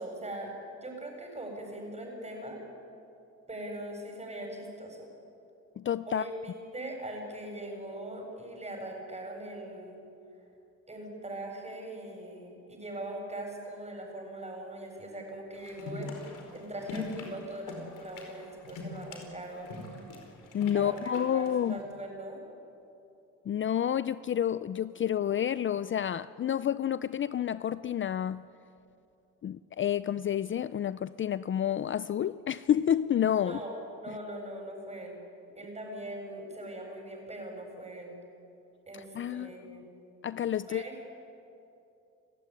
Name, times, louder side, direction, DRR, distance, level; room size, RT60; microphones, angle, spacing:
voice 1, 0.0-2.6 3.5-5.1 6.1-10.0 10.9-19.8 20.7-22.4 33.4-35.2 35.5-38.2 38.9-39.9 40.6-41.0, right 1 dB, 20° right, 7.4 m, -41 dB
voice 2, 5.8-6.2 20.5-21.8 23.5-28.5 29.4-33.6 38.9-39.9 40.2-40.8, left 10 dB, 40° left, 0.5 m, -29 dB
sound 1, 15.5-21.8, left 3 dB, 85° left, 4.8 m, -42 dB
29.0 x 15.5 x 9.9 m
cardioid pair, 90°, 30 cm